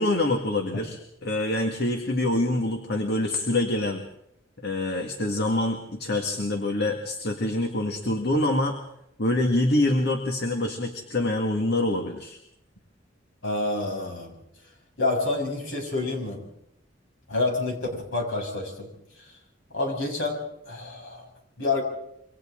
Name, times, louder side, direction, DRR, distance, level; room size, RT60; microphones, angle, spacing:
voice 1, 0.0-4.0 4.6-8.8 9.2-12.4, left 1 dB, 55° left, 3 dB, 1.9 m, -25 dB
voice 2, 13.4-14.3 15.0-16.4 17.3-18.9 19.7-20.4 20.6-21.3 21.6-21.8, left 2 dB, 70° left, 1 dB, 6.6 m, -28 dB
27.5 x 25.0 x 3.8 m, 0.79 s
head